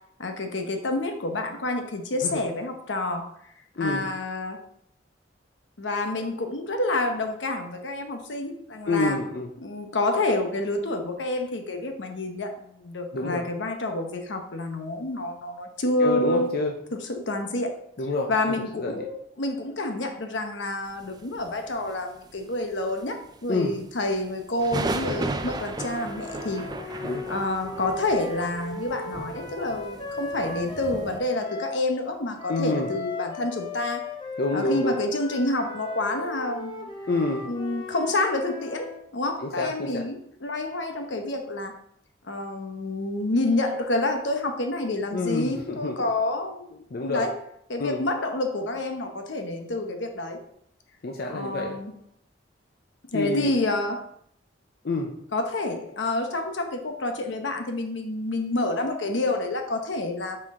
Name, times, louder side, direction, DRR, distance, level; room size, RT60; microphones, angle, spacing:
voice 1, 0.2-3.3 3.8-4.6 5.8-9.2 9.6-16.6 16.9-17.8 18.3-34.1 34.5-36.9 37.4-41.7 42.2-47.4 47.7-50.4 51.3-51.9 53.1-54.1 55.3-60.4, left 2 dB, 80° left, 5 dB, 0.9 m, -28 dB
voice 2, 3.8-4.1 8.9-9.5 13.1-13.5 16.0-16.7 18.0-19.1 23.5-23.8 27.0-27.3 32.5-32.9 34.4-35.0 37.1-37.5 39.4-40.0 45.1-46.0 46.9-47.3 47.8-48.0 51.0-51.8 53.1-53.5 54.8-55.1, left 2 dB, 55° left, 1 dB, 0.6 m, -27 dB
sound 1, 21.4-22.6 22.9-23.4 23.7-23.8 24.0-31.2, right 2 dB, 20° right, 0.4 m, -35 dB
sound 2, 25.7-31.8 32.4-39.0, left 3 dB, 25° left, 0.8 m, -37 dB
6.0 x 4.5 x 3.7 m, 0.70 s
head